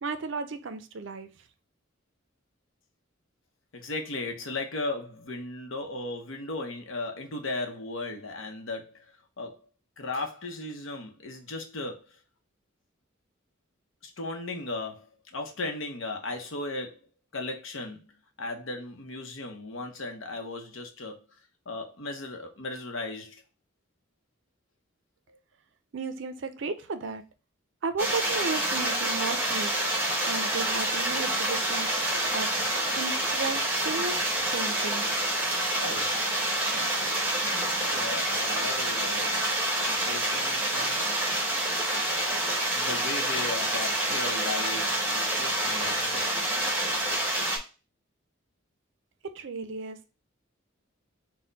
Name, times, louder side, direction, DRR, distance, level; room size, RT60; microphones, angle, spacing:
voice 1, 0.0-1.3 25.9-27.2 27.8-29.7 30.3-31.9 32.3-32.5 33.0-34.2 34.5-35.1 49.3-50.0, right 4 dB, 60° right, 0.4 m, -34 dB
voice 2, 3.7-9.1 9.4-9.6 10.0-12.1 14.0-17.0 17.3-18.1 18.4-21.2 21.7-23.4 25.3-25.4 35.7-36.2 36.7-41.1 42.7-46.3, left 2 dB, 70° left, 0.8 m, -36 dB
sound 1, 28.0-47.6, right 1 dB, 10° right, 0.9 m, -27 dB
4.2 x 2.1 x 3.9 m
head